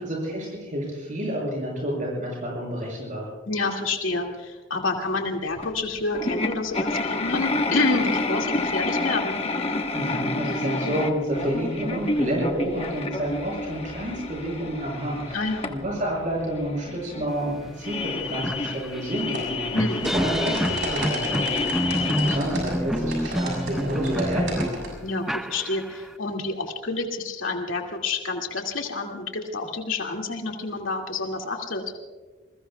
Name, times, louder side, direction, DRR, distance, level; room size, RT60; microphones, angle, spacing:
voice 1, 0.0-3.3 9.9-24.8, equal, 40° right, -3 dB, 6.5 m, -29 dB
voice 2, 3.5-9.4 15.3-15.7 19.7-20.1 25.0-31.8, left 3 dB, 80° left, 2 dB, 2.3 m, -28 dB
sound 1, 5.6-5.7 6.1-22.4, left 3 dB, 30° left, 1.2 m, -29 dB
sound 2, 17.6-17.7 18.1-26.1, equal, ahead, 0.4 m, -28 dB
sound 3, 19.3-24.9, right 1 dB, 60° right, 7.0 m, -34 dB
28.0 x 21.5 x 2.3 m, 1.3 s
head